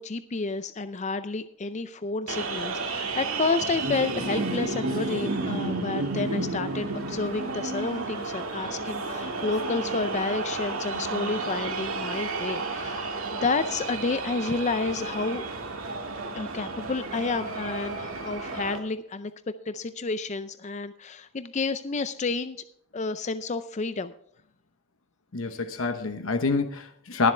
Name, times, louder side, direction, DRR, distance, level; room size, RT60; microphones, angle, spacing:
voice 1, 0.0-15.5 16.3-19.3 19.7-22.6 22.9-24.1, left 3 dB, 30° left, 11 dB, 0.5 m, -30 dB
sound 1, 2.3-18.8, right 3 dB, 70° right, 1.9 m, -32 dB
voice 2, 25.3-27.3, left 4 dB, 65° left, 7 dB, 1.0 m, -27 dB
21.0 x 7.5 x 3.3 m, 0.67 s
head